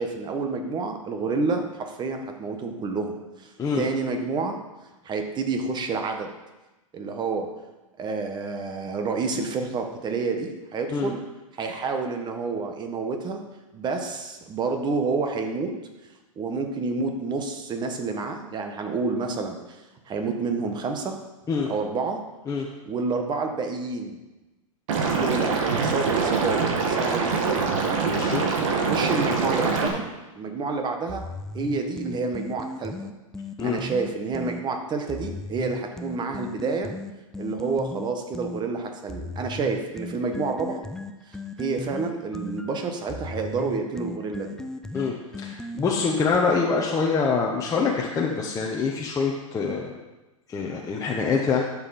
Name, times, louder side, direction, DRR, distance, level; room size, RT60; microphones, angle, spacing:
voice 1, 0.0-4.6 5.0-6.3 6.9-7.5 8.0-11.2 11.6-13.4 13.7-15.8 16.3-21.2 21.7-22.2 22.8-24.2 25.0-27.6 28.6-30.1 30.3-31.2 31.5-33.1 33.6-36.9 37.4-40.8 41.3-44.5, right 4 dB, 25° right, 5 dB, 1.5 m, -29 dB
Liquid, 24.9-29.9, right 4 dB, 65° right, 2.1 m, -24 dB
voice 2, 28.0-28.5 33.6-33.8 44.9-45.1 45.4-49.9 50.5-51.6, left 5 dB, 20° left, -2 dB, 1.2 m, -25 dB
sound 1, 31.1-34.6 35.1-38.6 39.1-46.9, left 2 dB, 5° left, 0.5 m, -37 dB
12.5 x 7.4 x 4.4 m, 1.1 s
hypercardioid pair, 115°, 18 cm